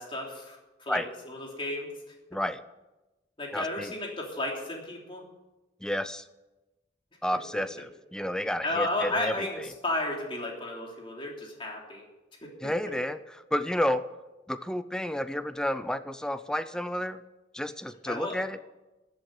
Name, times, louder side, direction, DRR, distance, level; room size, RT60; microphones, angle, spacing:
voice 1, 0.0-1.9 3.4-5.2 8.6-12.1 12.4-12.7 18.0-18.4, left 2 dB, 30° left, -1 dB, 3.4 m, -33 dB
voice 2, 2.3-2.6 3.5-3.9 5.8-6.2 7.2-9.6 12.6-13.2 13.5-14.0 14.5-17.2 17.5-18.6, left 1 dB, 5° left, 12 dB, 0.5 m, -31 dB
14.0 x 7.8 x 9.2 m, 1.1 s
head